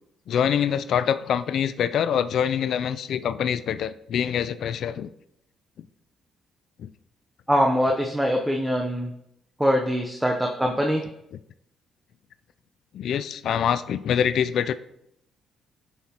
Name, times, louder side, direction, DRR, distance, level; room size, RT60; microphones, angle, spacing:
voice 1, 0.3-5.1 6.8-6.9 12.9-14.7, left 8 dB, 70° left, 14 dB, 0.3 m, -25 dB
voice 2, 7.5-9.1 9.6-11.0, equal, 5° right, 1 dB, 0.7 m, -23 dB
7.4 x 5.6 x 2.9 m, 0.78 s
cardioid pair, 90°, 0 cm